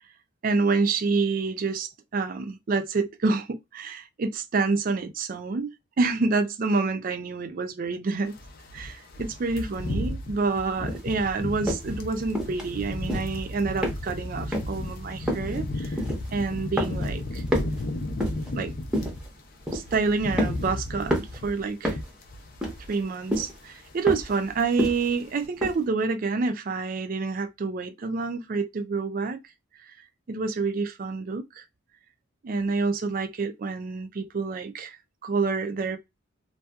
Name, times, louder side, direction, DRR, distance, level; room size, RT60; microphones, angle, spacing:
voice 1, 0.4-5.7 6.0-8.3 8.7-16.0 16.3-17.4 18.6-18.7 19.7-22.0 22.9-29.4 30.3-31.6 32.4-36.0, right 4 dB, 40° right, 0.3 m, -28 dB
sound 1, 8.3-19.3 19.6-23.0 23.3-23.6 23.9-24.7 24.9-25.1, left 1 dB, 45° left, 0.4 m, -34 dB
sound 2, 10.9-11.1 11.7-11.9 12.4-12.7 13.0-13.4 13.8-14.3 14.5-14.8 15.3-15.6 16.0-16.4 16.8-17.2 17.5-18.5 18.9-19.3 19.7-20.0 20.4-20.8 21.1-21.4 21.8-22.2 22.6-23.0 23.3-23.6 24.1-24.4 24.8-25.1 25.6-25.8, equal, 5° right, 0.6 m, -29 dB
2.7 x 2.2 x 2.2 m
head